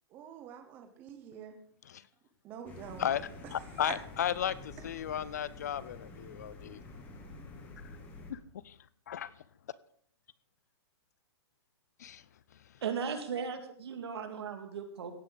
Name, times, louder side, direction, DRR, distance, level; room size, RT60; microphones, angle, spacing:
voice 1, 0.1-1.6 2.4-3.0 3.4-3.5 3.8-3.9, right 9 dB, 15° right, 0.7 m, -46 dB
sound 1, 2.7-8.3, left 2 dB, 10° left, 1.2 m, -48 dB
voice 2, 3.0-6.8 8.3-8.4 8.6-8.7 9.1-9.3 12.0-12.2, left 9 dB, 40° left, 0.4 m, -35 dB
voice 3, 12.8-15.1, right 6 dB, 65° right, 2.1 m, -37 dB
16.5 x 9.5 x 3.9 m
hypercardioid pair, 180°, 14 cm